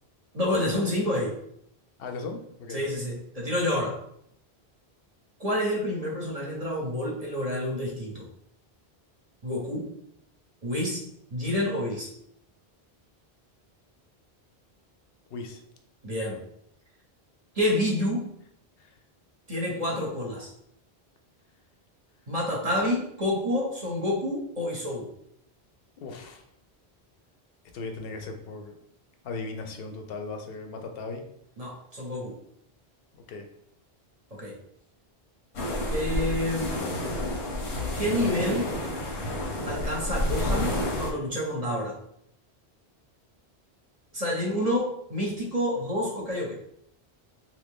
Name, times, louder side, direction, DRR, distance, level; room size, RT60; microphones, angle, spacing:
voice 1, 0.3-1.4 2.7-4.0 5.4-8.3 9.4-9.9 10.6-12.1 16.0-16.4 17.5-18.3 19.5-20.5 22.3-25.1 31.6-32.4 34.3-34.6 35.9-36.8 37.9-38.8 39.7-42.0 44.1-46.5, left 1 dB, 40° right, -3 dB, 0.7 m, -28 dB
voice 2, 2.0-2.8 15.3-15.6 18.8-18.9 26.0-26.4 27.7-28.7 29.2-31.2 33.1-33.5, left 3 dB, 70° left, 4 dB, 0.7 m, -37 dB
sound 1, 35.5-41.1, left 1 dB, 85° left, 1.1 m, -29 dB
2.8 x 2.6 x 3.4 m, 0.71 s
omnidirectional pair, 1.1 m